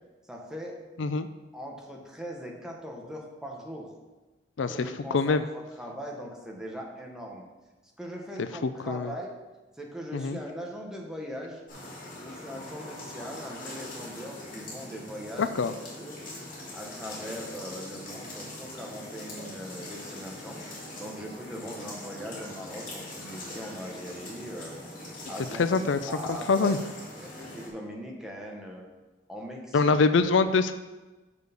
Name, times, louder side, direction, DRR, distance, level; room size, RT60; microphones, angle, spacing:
voice 1, 0.3-0.7 1.5-3.9 4.7-7.5 8.0-9.3 9.8-11.6 12.1-15.5 16.0-16.2 16.7-25.7 26.0-26.8 27.2-28.9 29.3-29.9, equal, 5° right, -1 dB, 1.3 m, -40 dB
voice 2, 5.1-5.4 8.4-8.5 8.9-9.1 10.1-10.4 15.4-15.7 25.6-26.1 26.5-26.8 29.7-30.7, left 4 dB, 80° left, 11 dB, 0.5 m, -24 dB
sound 1, 11.7-27.7, left 1 dB, 50° left, 2.8 m, -42 dB
6.8 x 6.5 x 5.3 m, 1.2 s
head